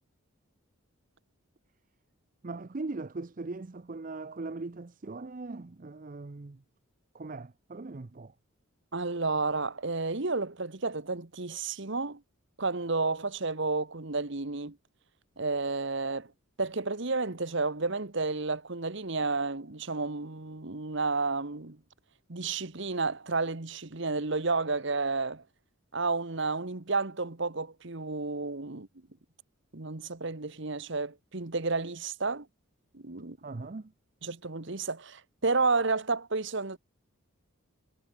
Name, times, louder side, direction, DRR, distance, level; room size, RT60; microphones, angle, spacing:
voice 1, 2.4-6.6 7.1-8.3 33.4-33.9, right 3 dB, 40° right, 0.6 m, -40 dB
voice 2, 8.9-12.2 12.6-14.8 15.4-16.3 16.6-21.8 22.3-25.4 25.9-28.9 29.7-32.5 32.9-33.4 34.2-36.8, right 3 dB, 55° right, 1.4 m, -31 dB
head